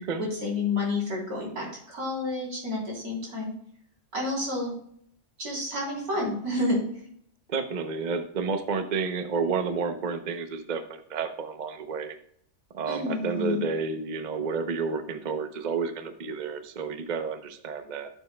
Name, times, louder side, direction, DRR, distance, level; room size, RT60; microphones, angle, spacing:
voice 1, 0.2-3.5 4.1-4.7 5.4-6.8 12.9-13.6, left 2 dB, 80° right, -3 dB, 4.0 m, -30 dB
voice 2, 7.5-12.2 12.7-18.1, right 5 dB, 45° right, 8 dB, 0.6 m, -30 dB
12.5 x 7.2 x 2.2 m, 0.66 s
omnidirectional pair, 1.6 m